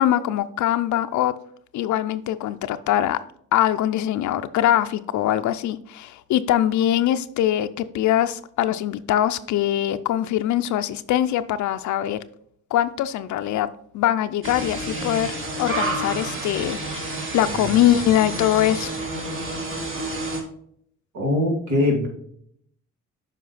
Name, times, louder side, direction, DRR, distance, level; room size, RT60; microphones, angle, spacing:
voice 1, 0.0-1.3 1.7-3.2 3.5-12.2 12.7-13.7 13.9-18.9, left 12 dB, 75° left, 11 dB, 0.5 m, -22 dB
sound 1, 14.4-20.4, right 2 dB, 45° right, 2.0 m, -29 dB
voice 2, 21.1-22.1, left 1 dB, 75° right, 0 dB, 2.4 m, -22 dB
7.5 x 5.3 x 4.0 m, 0.67 s
cardioid pair, 90°, 30 cm